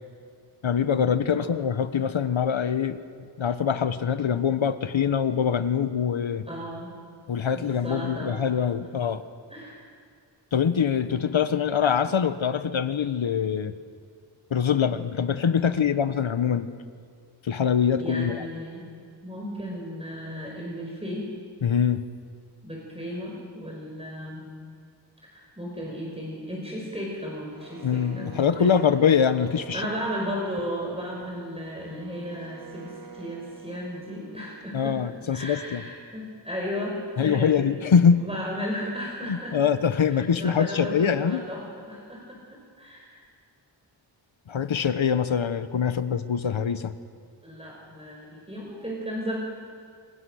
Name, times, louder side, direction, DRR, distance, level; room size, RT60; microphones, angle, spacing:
voice 1, 0.6-6.4 7.3-9.2 10.5-13.7 14.5-16.7 17.4-18.4 21.6-22.0 27.8-29.8 34.7-35.8 37.2-38.3 39.3-41.5 44.5-46.9, left 7 dB, 85° left, 12 dB, 1.2 m, -24 dB
voice 2, 6.5-6.9 7.5-8.4 9.5-9.8 18.0-18.9 19.2-21.3 22.6-24.5 25.3-28.9 29.7-35.0 35.3-37.7 38.2-39.6 40.1-43.3 47.4-49.4, equal, 15° right, -2 dB, 5.4 m, -35 dB
sound 1, 27.5-35.3, right 5 dB, 45° right, 2.9 m, -47 dB
26.5 x 26.5 x 6.5 m, 2.2 s
wide cardioid pair, 70°, 46 cm